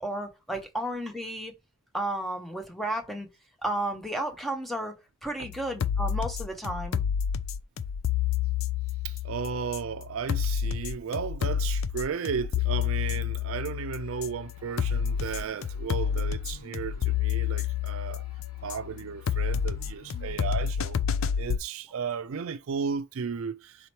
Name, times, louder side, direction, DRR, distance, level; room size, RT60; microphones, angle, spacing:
voice 1, 0.0-1.5 1.9-3.3 3.6-4.9 5.2-7.0, right 1 dB, ahead, 0.7 m, -32 dB
sound 1, 5.4-21.6, left 8 dB, 65° left, 0.4 m, -29 dB
voice 2, 9.0-18.3 18.6-21.0 21.4-23.9, right 6 dB, 70° right, 0.4 m, -34 dB
sound 2, 14.0-20.5, left 1 dB, 90° left, 2.6 m, -53 dB
4.2 x 2.9 x 3.1 m
head